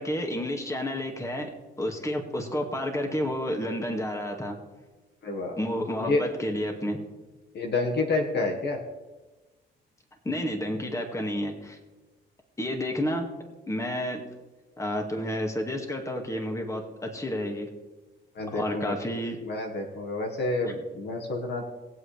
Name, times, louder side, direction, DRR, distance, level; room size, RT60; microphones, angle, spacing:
voice 1, 0.0-1.5 1.8-4.6 5.6-7.0 10.3-11.8 12.6-13.3 13.7-14.2 14.8-17.7 18.5-19.4, left 1 dB, 15° left, 2 dB, 2.0 m, -30 dB
voice 2, 5.2-5.6 6.0-6.2 7.5-8.8 18.3-19.0 19.4-21.6, left 2 dB, 60° left, 2 dB, 1.7 m, -29 dB
20.5 x 7.8 x 3.4 m, 1.2 s
cardioid pair, 90°, 20 cm